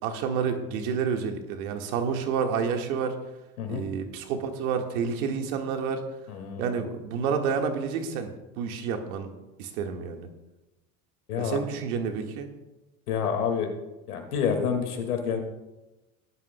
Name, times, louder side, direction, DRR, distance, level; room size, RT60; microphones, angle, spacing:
voice 1, 0.0-3.2 3.7-6.0 6.6-8.3 8.6-9.3 9.6-10.3 11.4-12.5, right 6 dB, 75° right, 5 dB, 1.7 m, -29 dB
voice 2, 6.3-6.8 11.3-11.6 13.1-13.7 14.1-15.4, left 7 dB, 90° left, 5 dB, 2.0 m, -28 dB
18.0 x 11.0 x 2.2 m, 1.0 s
hypercardioid pair, 75°, 43 cm